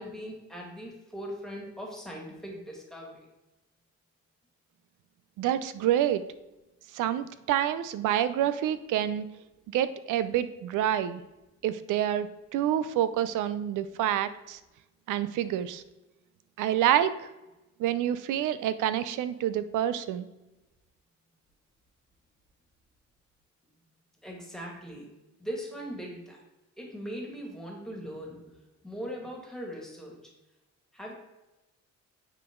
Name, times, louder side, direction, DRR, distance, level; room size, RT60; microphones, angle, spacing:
voice 1, 0.0-3.2 24.2-25.1 25.4-26.4 26.8-28.5 28.8-30.3 30.9-31.1, equal, ahead, -1 dB, 2.0 m, -40 dB
voice 2, 5.4-6.2 6.9-9.3 9.7-11.2 11.6-14.6 15.1-15.8 16.6-17.2 17.8-20.3, right 11 dB, 85° right, 13 dB, 0.5 m, -27 dB
9.0 x 3.9 x 3.7 m, 1.0 s
cardioid pair, 90°, 30 cm